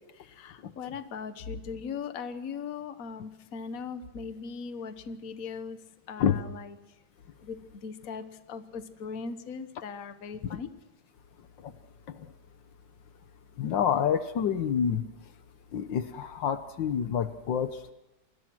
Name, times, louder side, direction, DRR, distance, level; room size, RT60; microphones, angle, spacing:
voice 1, 0.1-5.8 6.1-6.8 7.4-10.7, left 5 dB, 50° left, 10 dB, 1.6 m, -39 dB
voice 2, 13.6-15.1 15.7-17.9, left 8 dB, 80° left, 11 dB, 1.7 m, -28 dB
28.5 x 20.5 x 6.2 m, 0.95 s
omnidirectional pair, 2.0 m